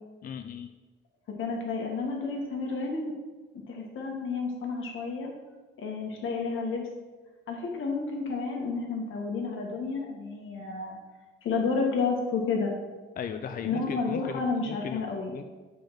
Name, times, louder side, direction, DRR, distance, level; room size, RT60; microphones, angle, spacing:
voice 1, 0.2-0.7 13.2-15.0 15.3-15.4, left 7 dB, 45° left, 7 dB, 0.4 m, -37 dB
voice 2, 1.4-3.1 3.7-5.3 5.8-6.9 7.5-11.0 11.4-12.7 13.6-15.3, left 4 dB, 85° left, 0 dB, 1.8 m, -31 dB
7.1 x 5.2 x 5.9 m, 1.3 s
cardioid pair, 125°, 20 cm